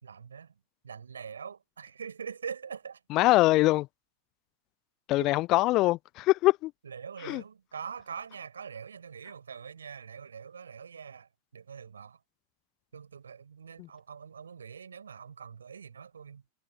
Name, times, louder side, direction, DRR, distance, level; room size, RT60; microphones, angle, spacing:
voice 1, 0.0-3.0 5.2-5.4 6.8-12.2 12.9-16.4, right 6 dB, 70° right, 4.3 m, -43 dB
voice 2, 3.1-3.9 5.1-6.7 7.2-7.4, left 19 dB, 40° left, 0.4 m, -23 dB
figure-of-eight pair, 90°, 0 cm